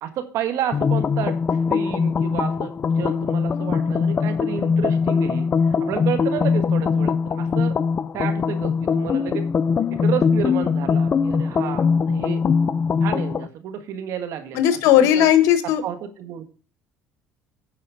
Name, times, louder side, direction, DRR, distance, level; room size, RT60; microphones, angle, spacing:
voice 1, 0.0-7.8 8.1-9.5 9.9-12.5 13.0-15.3 15.8-16.4, right 9 dB, 70° right, 8 dB, 1.5 m, -31 dB
sound 1, 0.7-13.5, left 5 dB, 35° left, 0.4 m, -21 dB
voice 2, 14.5-15.8, left 11 dB, 80° left, 11 dB, 1.2 m, -16 dB
9.6 x 4.9 x 6.2 m, 0.39 s
supercardioid pair, 100°, 5 cm